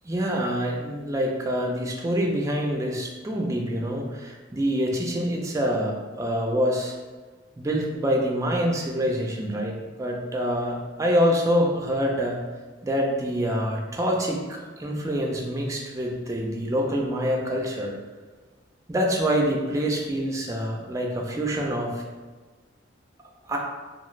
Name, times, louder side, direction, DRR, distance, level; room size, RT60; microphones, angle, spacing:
voice 1, 0.0-6.9 7.6-12.4 12.8-17.9 18.9-22.0 23.5-23.6, equal, 15° right, -1 dB, 0.3 m, -26 dB
2.3 x 2.3 x 3.1 m, 1.3 s
head